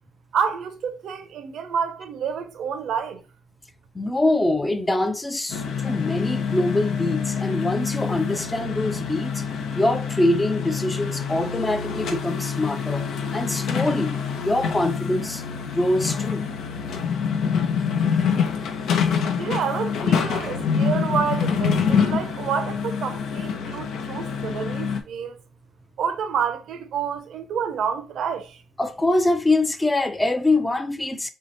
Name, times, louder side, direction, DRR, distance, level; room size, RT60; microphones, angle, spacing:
voice 1, 0.3-3.2 19.3-25.4 26.0-28.6, right 7 dB, 70° right, 0.7 m, -28 dB
voice 2, 3.9-9.4 9.7-14.2 14.4-16.5 17.9-18.1 28.8-31.3, left 2 dB, 15° left, 0.5 m, -24 dB
sound 1, 5.5-25.0, left 6 dB, 75° left, 0.6 m, -26 dB
3.2 x 2.9 x 4.0 m
cardioid pair, 90°, 0 cm